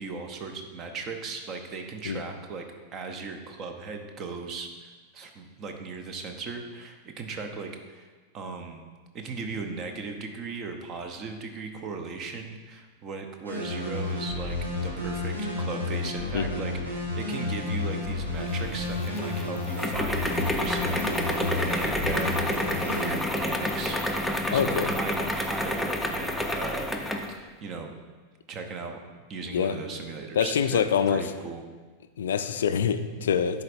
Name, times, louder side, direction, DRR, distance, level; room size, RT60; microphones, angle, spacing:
voice 1, 0.0-2.6 2.9-8.1 8.3-8.8 9.1-22.4 22.8-27.0 27.3-27.9 28.5-29.0 29.3-31.6 33.2-33.3, right 4 dB, 30° right, 5 dB, 0.7 m, -37 dB
sound 1, 13.4-23.1, left 2 dB, 80° right, 1.5 m, -31 dB
sound 2, 18.5-27.3, left 1 dB, 5° left, 0.5 m, -29 dB
voice 2, 24.5-24.9 29.5-29.8 30.4-31.2 32.2-33.6, left 7 dB, 65° left, 11 dB, 0.3 m, -25 dB
10.5 x 4.0 x 2.6 m, 1.4 s
figure-of-eight pair, 90°, 0 cm